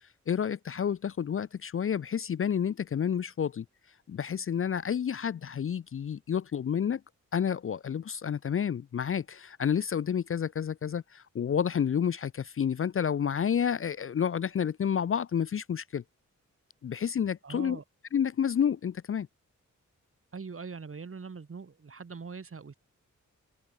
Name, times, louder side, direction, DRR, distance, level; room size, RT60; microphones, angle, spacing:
voice 1, 0.3-3.6 4.1-7.0 7.3-16.0 16.8-17.8 18.1-19.3, left 8 dB, 45° left, 0.5 m, -30 dB
voice 2, 17.4-17.8 20.3-22.7, right 5 dB, 45° right, 2.8 m, -42 dB
open air
wide cardioid pair, 90°, 30 cm